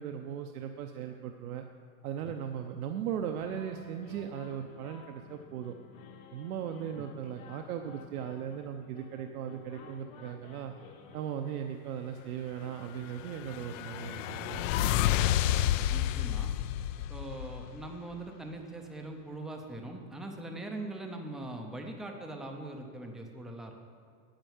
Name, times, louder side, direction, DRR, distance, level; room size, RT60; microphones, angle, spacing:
voice 1, 0.0-1.6 2.0-5.7 6.3-10.7 11.1-15.0, right 9 dB, 80° right, 5 dB, 0.8 m, -38 dB
sound 1, 3.3-11.6, left 5 dB, 45° left, 1.2 m, -53 dB
sound 2, 13.0-18.0, left 12 dB, 60° left, 0.5 m, -30 dB
voice 2, 15.9-16.6 17.1-23.7, right 2 dB, ahead, 3 dB, 0.4 m, -41 dB
9.0 x 8.1 x 7.2 m, 2.1 s
supercardioid pair, 145°, 43 cm